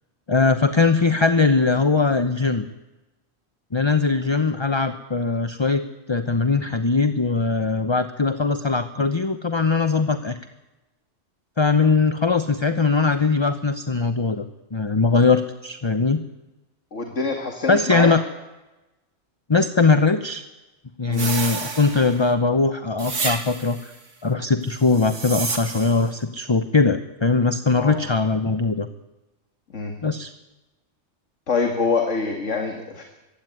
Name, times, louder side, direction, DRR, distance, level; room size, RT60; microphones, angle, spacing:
voice 1, 0.3-2.7 3.7-10.4 11.6-16.2 17.7-18.2 19.5-20.4 21.0-23.9 24.2-28.9 30.0-30.3, left 4 dB, 25° left, 10 dB, 0.9 m, -20 dB
voice 2, 16.9-18.1 21.1-21.3 27.8-27.9 29.7-30.0 31.5-33.0, left 4 dB, 75° left, 4 dB, 2.4 m, -25 dB
sound 1, 21.1-22.3 23.0-23.9 24.8-26.1, right 4 dB, 75° right, 2.3 m, -30 dB
23.0 x 16.0 x 9.4 m, 1.1 s
omnidirectional pair, 1.3 m